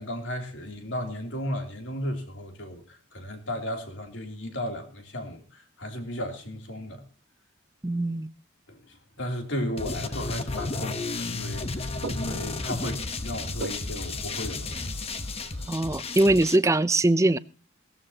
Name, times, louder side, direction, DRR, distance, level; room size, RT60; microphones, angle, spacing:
voice 1, 0.0-7.0 8.7-11.9 12.1-15.0, equal, 60° left, 3.0 m, -35 dB
voice 2, 7.8-8.3 15.7-17.4, right 2 dB, 15° right, 0.5 m, -22 dB
sound 1, 9.8-16.6, left 3 dB, 30° left, 1.0 m, -33 dB
sound 2, 10.6-15.7, right 2 dB, 60° right, 1.0 m, -43 dB
17.5 x 14.0 x 2.9 m
head